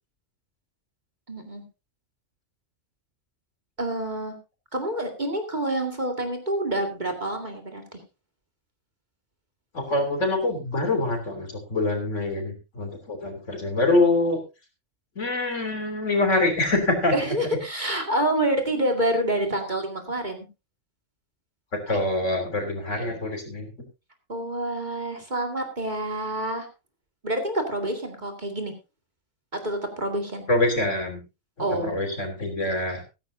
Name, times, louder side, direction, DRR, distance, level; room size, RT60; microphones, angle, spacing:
voice 1, 1.3-1.6 3.8-4.4 4.7-8.0 17.1-20.5 21.9-22.0 23.0-23.2 24.3-26.7 27.2-28.7 29.5-30.5 31.6-32.0, right 1 dB, 35° right, 4 dB, 2.4 m, -27 dB
voice 2, 9.7-14.4 15.2-17.3 21.7-23.7 30.5-31.2 31.8-33.0, left 2 dB, 65° left, 5 dB, 3.6 m, -25 dB
14.5 x 14.5 x 2.7 m, 0.26 s
omnidirectional pair, 1.4 m